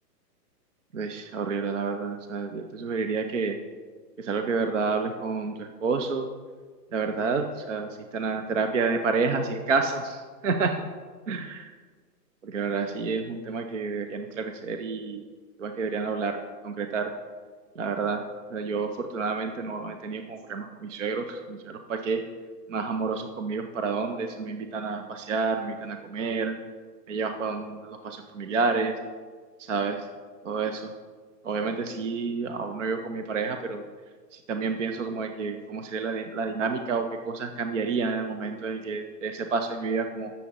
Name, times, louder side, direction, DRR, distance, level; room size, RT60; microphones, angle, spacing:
voice 1, 0.9-3.6 4.2-6.3 6.9-10.8 11.3-11.7 12.4-15.3 15.6-17.1 17.8-18.2 18.5-22.3 22.7-26.6 27.1-29.0 29.6-30.1 30.4-30.9 31.4-33.8 34.3-40.3, right 4 dB, 50° right, 6 dB, 0.5 m, -29 dB
8.4 x 7.0 x 3.6 m, 1.5 s
hypercardioid pair, 175°, 50 cm